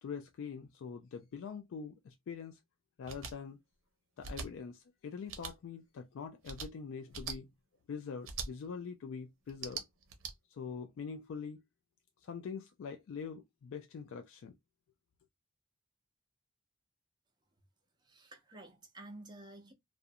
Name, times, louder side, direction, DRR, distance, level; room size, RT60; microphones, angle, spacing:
voice 1, 0.0-2.6 3.0-3.6 4.2-7.5 7.9-9.8 10.5-11.6 12.2-14.6, left 6 dB, 70° left, 0.3 m, -44 dB
sound 1, 3.1-3.3 4.2-4.5 5.3-5.5 6.4-6.7 7.1-7.4 8.2-8.5 9.5-10.3, right 5 dB, 85° right, 0.6 m, -41 dB
voice 2, 18.0-19.7, right 2 dB, 20° right, 0.6 m, -51 dB
2.4 x 2.0 x 2.6 m
head